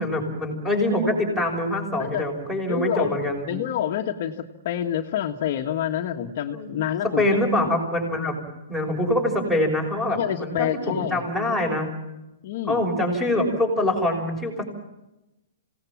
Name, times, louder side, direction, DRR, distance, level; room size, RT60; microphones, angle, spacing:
voice 1, 0.0-3.5 6.5-6.7 7.2-8.3 8.7-11.9 12.7-14.6, left 1 dB, 5° right, 3 dB, 6.0 m, -24 dB
voice 2, 2.7-3.1 3.5-4.4 4.6-7.5 10.1-11.2 12.4-12.9, left 11 dB, 45° left, 3 dB, 1.6 m, -27 dB
27.5 x 18.0 x 7.4 m, 0.94 s
hypercardioid pair, 165°, 0 cm